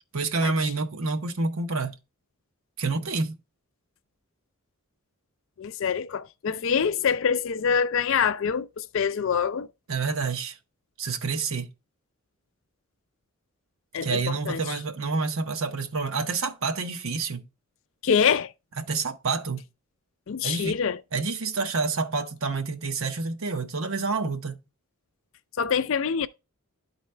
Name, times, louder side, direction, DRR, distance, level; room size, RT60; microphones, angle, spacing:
voice 1, 0.1-2.0 2.8-3.4 9.9-10.6 11.0-11.7 14.0-17.5 18.8-19.6 20.4-20.8 21.1-24.6, right 4 dB, 70° right, 0.9 m, -28 dB
voice 2, 5.6-9.7 13.9-14.6 18.0-18.5 20.3-21.0 25.6-26.3, left 6 dB, 60° left, 0.4 m, -25 dB
11.5 x 4.1 x 3.2 m
head